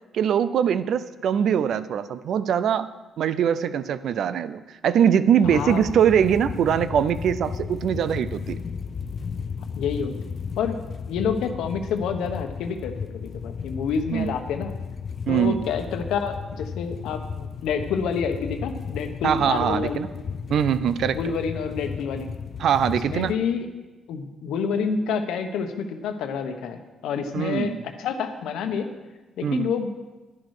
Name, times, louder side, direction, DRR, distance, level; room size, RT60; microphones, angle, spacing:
voice 1, 0.1-2.9 3.2-8.6 14.1-14.3 15.3-15.6 19.2-20.1 20.5-21.2 22.6-23.3 27.3-27.8 29.4-29.7, right 8 dB, 70° right, 14 dB, 0.5 m, -22 dB
voice 2, 5.4-5.9 9.7-10.3 10.6-10.8 11.1-12.9 13.2-14.7 15.3-20.0 21.1-22.3 23.1-23.7 24.1-27.7 28.0-28.9 29.4-29.9, left 6 dB, 85° left, 7 dB, 1.1 m, -28 dB
sound 1, 5.4-23.3, left 6 dB, 45° left, 0.6 m, -34 dB
11.0 x 10.5 x 4.9 m, 1.2 s
cardioid pair, 90°, 0 cm